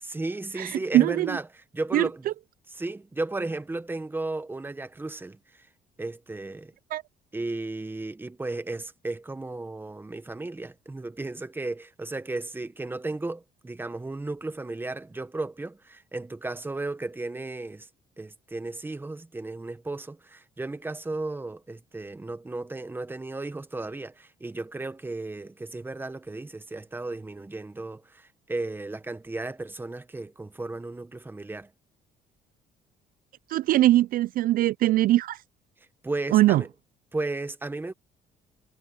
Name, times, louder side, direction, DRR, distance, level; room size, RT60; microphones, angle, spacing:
voice 1, 0.0-2.2 2.7-5.7 6.0-6.7 7.3-17.9 18.2-31.7 36.0-36.7 37.1-37.9, right 2 dB, 10° right, 1.3 m, -34 dB
voice 2, 0.6-1.3 1.9-2.1 6.9-7.0 33.5-35.4 36.3-36.6, right 15 dB, 60° right, 0.4 m, -21 dB
cardioid pair, 110°, 17 cm